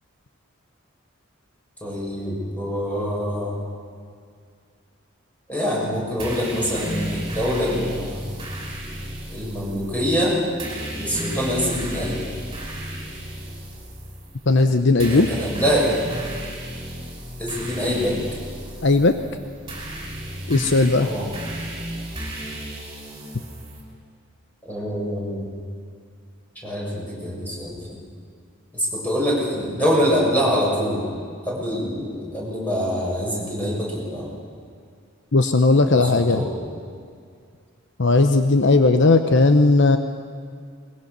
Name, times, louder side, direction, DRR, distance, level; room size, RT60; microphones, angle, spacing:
voice 1, 1.8-3.6 5.5-8.2 9.3-10.4 10.9-12.3 15.0-16.0 17.4-18.2 21.0-21.3 24.7-25.4 26.6-28.0 28.7-31.0 31.5-34.3 35.8-36.5, equal, 10° left, -5 dB, 7.1 m, -25 dB
sound 1, 6.2-23.8, right 1 dB, 20° right, 5.7 m, -34 dB
voice 2, 14.5-15.3 18.8-19.2 20.5-21.1 35.3-36.5 38.0-40.0, left 3 dB, 60° left, 8 dB, 0.9 m, -17 dB
22.0 x 21.5 x 6.7 m, 2.2 s
head